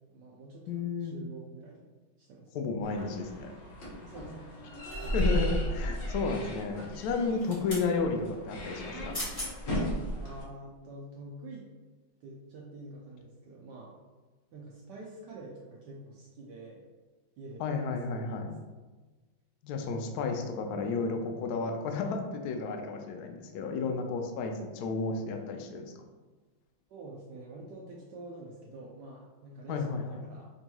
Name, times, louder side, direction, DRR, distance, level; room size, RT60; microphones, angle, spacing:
voice 1, 0.1-1.9 2.2-2.6 4.0-4.7 5.0-5.2 10.2-11.7 12.2-14.0 14.5-16.9 17.4-17.8 18.1-18.7 26.9-30.5, right 2 dB, 70° right, -3 dB, 1.1 m, -47 dB
voice 2, 0.7-1.2 2.5-3.5 5.1-9.2 17.6-18.5 19.6-25.9 29.7-30.3, left 4 dB, 85° left, 4 dB, 0.8 m, -32 dB
sound 1, 2.8-10.4, equal, 50° left, 1.1 m, -35 dB
sound 2, 4.9-5.5 7.2-7.9 8.9-9.0 9.1-9.5 10.1-10.2, left 1 dB, 25° left, 0.8 m, -39 dB
5.3 x 2.9 x 2.2 m, 1.3 s
omnidirectional pair, 2.2 m